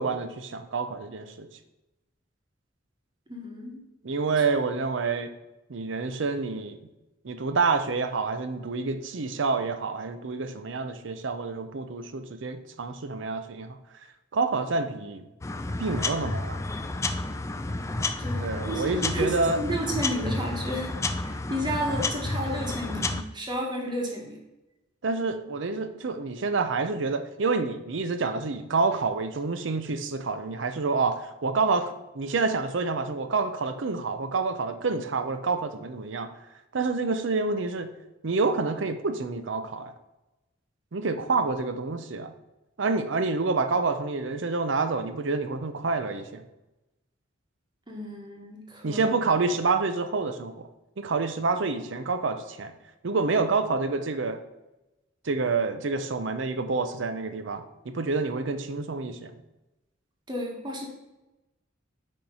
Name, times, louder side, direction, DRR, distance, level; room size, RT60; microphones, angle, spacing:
voice 1, 0.0-1.5 4.0-5.3 5.7-6.8 7.2-13.8 14.3-15.3 15.8-16.6 18.4-19.6 25.0-36.3 36.7-37.9 38.2-39.9 40.9-42.3 42.8-46.4 48.8-50.7 51.0-52.7 53.0-54.4 55.2-59.4, right 4 dB, 70° right, 9 dB, 0.6 m, -28 dB
voice 2, 3.3-3.8 18.2-21.0 21.2-24.4 47.9-49.0 60.3-60.9, equal, 25° right, -1 dB, 1.3 m, -32 dB
sound 1, 15.4-23.2, left 2 dB, 15° left, 0.3 m, -31 dB
8.7 x 3.1 x 5.5 m, 0.99 s
head